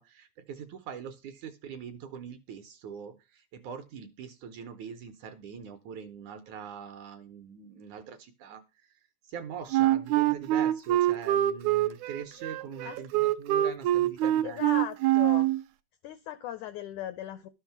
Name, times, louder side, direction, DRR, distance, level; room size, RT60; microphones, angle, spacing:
voice 1, 0.0-8.6 9.3-14.6, right 7 dB, 70° right, 9 dB, 1.9 m, -42 dB
Wind instrument woodwind instrument, 9.7-15.6, right 14 dB, 90° right, 1.6 m, -25 dB
voice 2, 14.2-15.5 16.0-17.5, left 12 dB, 85° left, 12 dB, 1.7 m, -38 dB
12.5 x 6.4 x 5.9 m, 0.28 s
omnidirectional pair, 4.3 m